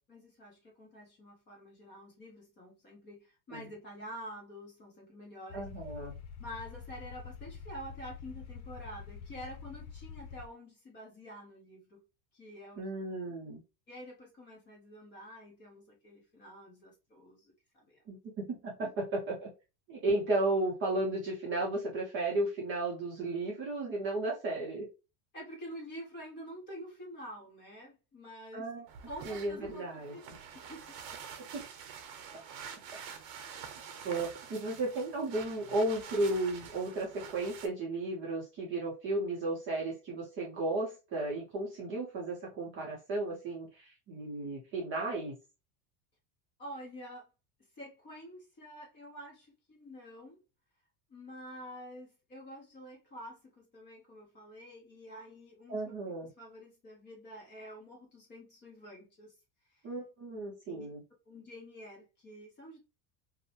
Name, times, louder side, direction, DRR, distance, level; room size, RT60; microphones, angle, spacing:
voice 1, 0.1-5.7 6.4-12.0 12.3-12.8 13.9-18.0 18.8-18.9 25.3-28.7 29.0-30.2 30.5-30.8 46.6-47.3 47.7-50.4 51.1-59.3 59.7-59.9 60.7-60.9 61.3-62.8, equal, 20° left, 0.6 m, -48 dB
sound 1, 5.5-10.5, left 6 dB, 85° left, 0.7 m, -46 dB
voice 2, 5.5-6.1 12.8-13.6 18.1-19.5 19.9-24.9 28.5-28.8 29.3-30.4 31.5-31.6 34.0-45.3 55.7-56.3 59.8-61.0, right 2 dB, 25° right, 0.5 m, -34 dB
sound 2, 28.9-37.7, right 7 dB, 70° right, 0.8 m, -47 dB
2.6 x 2.1 x 2.8 m
cardioid pair, 170°, 50 cm